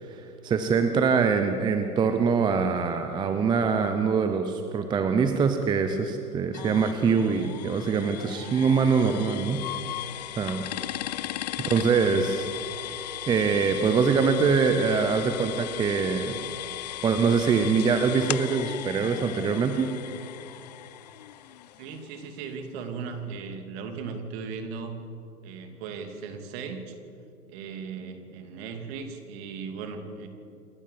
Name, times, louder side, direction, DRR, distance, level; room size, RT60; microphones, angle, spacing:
voice 1, 0.1-9.6 10.4-10.6 11.6-12.5 13.3-16.4 17.0-19.9, right 5 dB, 10° right, 7 dB, 0.7 m, -24 dB
sound 1, 6.5-22.2, left 14 dB, 30° left, 0.4 m, -37 dB
voice 2, 21.8-25.0 25.4-26.9 27.5-30.3, right 5 dB, 40° right, 6 dB, 2.9 m, -37 dB
28.0 x 12.0 x 8.6 m, 2.6 s
hypercardioid pair, 125°, 46 cm